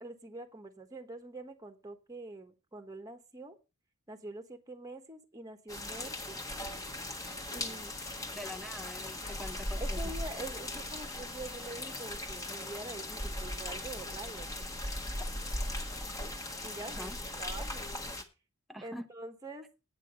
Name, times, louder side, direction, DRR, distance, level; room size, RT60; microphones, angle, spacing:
voice 1, 0.0-3.6 4.1-6.3 7.5-8.0 9.8-14.5 16.6-17.9 18.8-19.7, right 2 dB, 15° right, 7 dB, 1.2 m, -45 dB
sound 1, 5.7-18.2, left 1 dB, 15° left, 1.4 m, -38 dB
voice 2, 8.3-10.0 17.0-17.2 18.7-19.1, left 1 dB, ahead, 8 dB, 0.7 m, -44 dB
9.0 x 8.5 x 5.2 m, 0.29 s
head